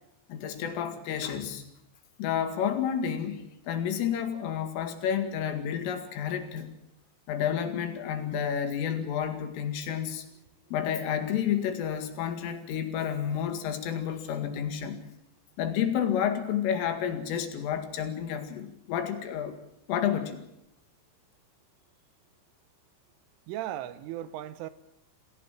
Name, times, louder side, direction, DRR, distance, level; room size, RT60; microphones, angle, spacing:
voice 1, 0.3-1.6 2.2-6.7 7.3-10.3 10.7-15.0 15.6-19.6 19.9-20.4, left 9 dB, 75° left, 4.7 m, -30 dB
voice 2, 23.5-24.7, right 12 dB, 80° right, 3.5 m, -36 dB
28.5 x 17.0 x 7.5 m
omnidirectional pair, 5.9 m